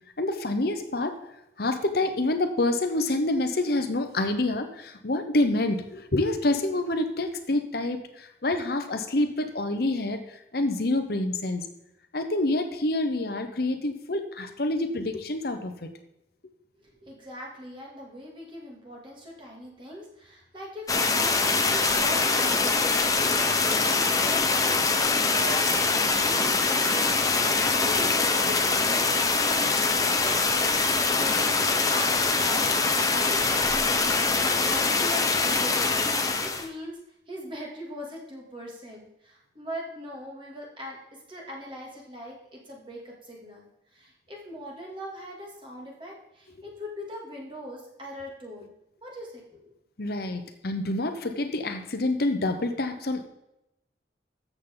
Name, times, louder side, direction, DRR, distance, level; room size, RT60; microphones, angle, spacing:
voice 1, 0.2-1.2 1.6-11.7 12.1-15.9 50.0-53.3, left 2 dB, 55° left, 7 dB, 1.0 m, -27 dB
voice 2, 16.8-22.9 23.2-25.6 26.2-27.4 27.8-28.1 28.4-29.3 29.8-30.4 30.8-35.9 36.4-37.0 37.3-48.7 49.0-49.7, equal, 25° right, -2 dB, 2.7 m, -41 dB
sound 1, 20.9-36.7, left 3 dB, 20° left, 1.0 m, -23 dB
13.5 x 7.6 x 3.9 m, 0.87 s
head